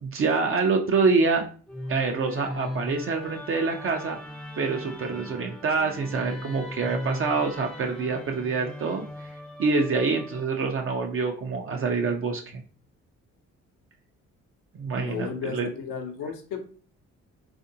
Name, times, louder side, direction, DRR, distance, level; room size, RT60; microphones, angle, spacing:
voice 1, 0.0-1.4 1.9-4.2 4.6-9.3 9.6-12.6 14.7-15.7, right 4 dB, 45° right, 3 dB, 0.5 m, -26 dB
Musical instrument, 1.7-10.9, left 1 dB, 5° left, 0.5 m, -38 dB
voice 2, 15.0-16.6, left 7 dB, 85° left, 4 dB, 0.7 m, -34 dB
3.5 x 2.5 x 2.6 m, 0.41 s
cardioid pair, 90°, 30 cm